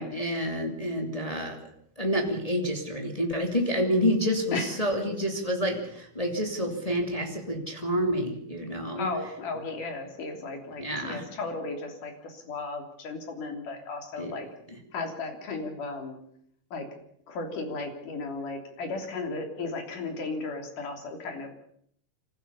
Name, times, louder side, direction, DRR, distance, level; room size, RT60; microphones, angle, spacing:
voice 1, 0.0-1.6 2.0-9.1 10.8-11.2 14.2-14.3 14.7-14.8, equal, 10° left, 1 dB, 2.7 m, -28 dB
voice 2, 9.0-14.5 14.9-16.2 16.7-16.9 17.3-21.5, left 3 dB, 80° left, 4 dB, 4.8 m, -35 dB
26.0 x 15.5 x 7.0 m, 0.68 s
omnidirectional pair, 3.6 m